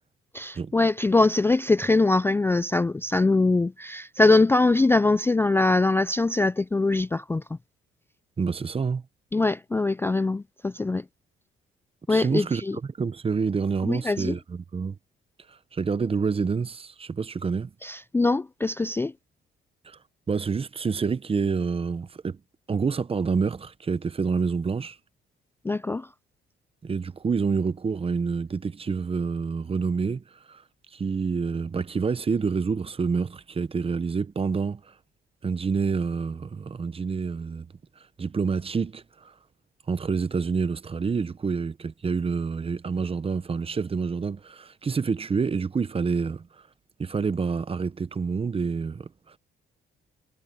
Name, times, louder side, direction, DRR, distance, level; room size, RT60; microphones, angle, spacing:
voice 1, 0.3-7.4 9.3-11.0 12.1-12.8 13.9-14.4 17.8-19.1 25.6-26.1, left 3 dB, 10° left, 0.3 m, -22 dB
voice 2, 8.4-9.0 12.1-15.0 15.5-17.7 19.8-20.0 20.3-22.4 22.7-25.0 26.8-30.6 30.9-34.9 35.4-37.7 38.2-39.3 39.9-46.5 47.0-49.4, right 5 dB, 30° right, 0.8 m, -28 dB
cardioid pair, 90°, 20 cm